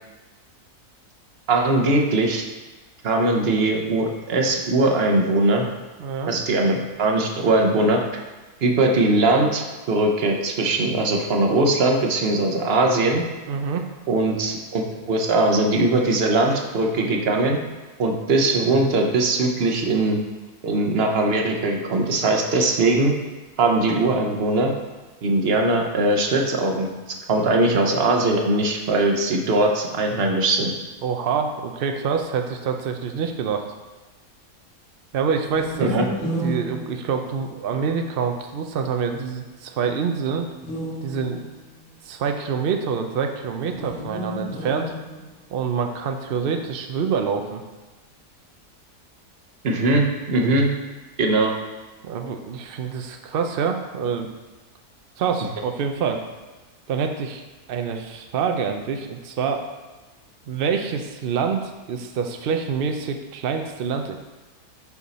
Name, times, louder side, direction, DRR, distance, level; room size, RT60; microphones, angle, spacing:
voice 1, 1.5-2.4 3.0-5.7 6.3-8.0 8.6-9.6 9.9-13.2 14.1-17.6 18.0-20.2 20.6-23.1 23.6-24.7 25.2-26.9 27.3-30.7 35.8-36.1 49.6-50.7 51.2-51.5, right 2 dB, 50° right, 2 dB, 0.9 m, -20 dB
voice 2, 6.0-6.3 13.5-13.9 31.0-33.7 35.1-35.9 36.2-40.5 41.0-41.5 42.0-44.9 45.5-47.6 50.4-50.5 52.0-54.3 55.2-56.2 56.9-57.4 57.7-59.6 60.5-64.2, right 6 dB, 85° right, 4 dB, 0.5 m, -26 dB
sound 1, 35.4-37.8 40.5-41.8 43.7-45.6, equal, 45° left, 1.7 m, -32 dB
7.1 x 5.4 x 4.1 m, 1.2 s
omnidirectional pair, 1.7 m